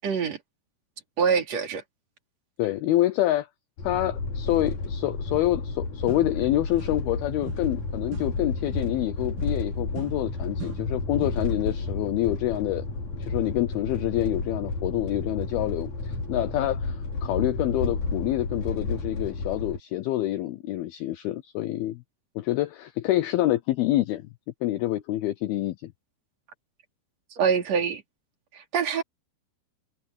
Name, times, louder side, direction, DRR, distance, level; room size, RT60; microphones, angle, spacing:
voice 1, 0.0-0.4 1.2-1.8 27.3-28.0 28.5-29.0, right 6 dB, 40° right, 3.9 m, -25 dB
voice 2, 2.6-3.5 3.8-12.8 13.2-22.0 22.4-24.3 24.6-25.9, left 15 dB, 85° left, 2.2 m, -27 dB
sound 1, 3.8-19.8, left 3 dB, 45° left, 4.9 m, -31 dB
sound 2, 5.7-5.8 6.1-7.2 7.4-11.6, right 9 dB, 75° right, 5.5 m, -44 dB
omnidirectional pair, 5.2 m